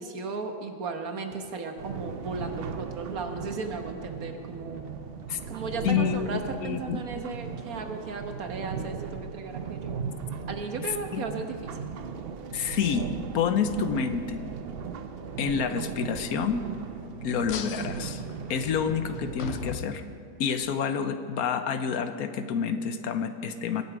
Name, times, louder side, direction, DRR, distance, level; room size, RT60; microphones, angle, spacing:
voice 1, 0.0-4.9 5.5-10.0 10.5-11.8, right 4 dB, 70° right, 5 dB, 1.6 m, -35 dB
sound 1, 1.8-19.7, right 6 dB, 55° right, 0.7 m, -37 dB
voice 2, 5.8-6.3 6.6-7.0 11.1-11.2 12.5-14.4 15.4-16.7 17.2-18.2 18.5-20.0 20.4-23.8, left 7 dB, 80° left, 9 dB, 1.2 m, -28 dB
sound 2, 17.5-20.7, left 6 dB, 55° left, 0.8 m, -40 dB
22.5 x 8.1 x 5.0 m, 2.3 s
omnidirectional pair, 1.6 m